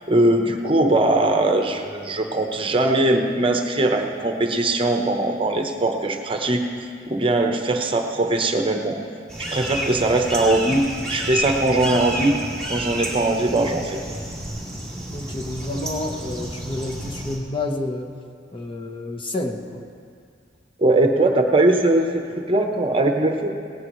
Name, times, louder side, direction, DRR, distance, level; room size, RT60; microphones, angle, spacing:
voice 1, 0.1-9.0 9.4-10.8 11.1-12.4 12.7-14.0 20.8-23.5, right 2 dB, 30° right, 4 dB, 0.9 m, -20 dB
sound 1, 9.3-17.4, equal, 5° left, 2.5 m, -30 dB
voice 2, 15.1-18.1 18.5-19.8, left 2 dB, 30° left, 2 dB, 1.0 m, -29 dB
18.5 x 17.5 x 3.1 m, 2.3 s
head